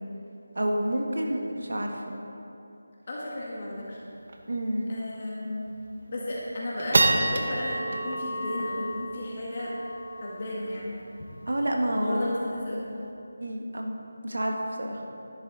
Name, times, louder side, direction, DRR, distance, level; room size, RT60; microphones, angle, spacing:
voice 1, 0.5-2.2 4.5-4.9 11.5-12.3 13.4-14.0 14.2-15.0, right 1 dB, 70° right, 2 dB, 1.6 m, -29 dB
voice 2, 3.1-4.0 4.9-5.7 6.1-9.8 10.2-11.0 12.0-12.9, left 1 dB, 40° left, -5 dB, 1.7 m, -34 dB
sound 1, 3.4-3.5 3.8-3.9 4.3-4.5 5.0-5.1 5.7-6.0 6.5-13.0, right 2 dB, 50° right, 0.9 m, -30 dB
11.5 x 10.5 x 4.0 m, 2.9 s
figure-of-eight pair, 165°, 0 cm